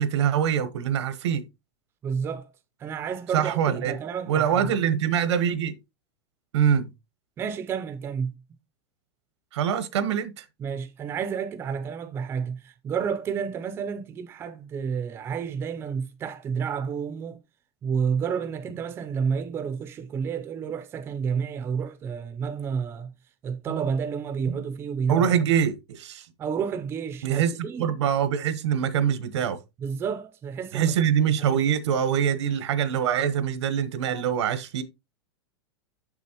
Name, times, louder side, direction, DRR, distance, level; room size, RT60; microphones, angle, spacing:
voice 1, 0.0-1.4 3.3-3.9 4.3-5.8 6.5-6.9 9.5-10.4 23.7-23.8 24.5-24.6 25.1-26.3 27.2-27.5 27.8-29.6 30.7-34.8, right 8 dB, 80° right, 1.2 m, -24 dB
voice 2, 2.0-2.5 2.8-4.7 7.4-8.3 10.6-17.4 17.8-23.1 23.4-25.3 26.4-28.0 29.8-30.9 31.4-31.6 34.1-34.2, right 6 dB, 15° right, 0.6 m, -30 dB
7.4 x 6.2 x 3.0 m
supercardioid pair, 165°, 14 cm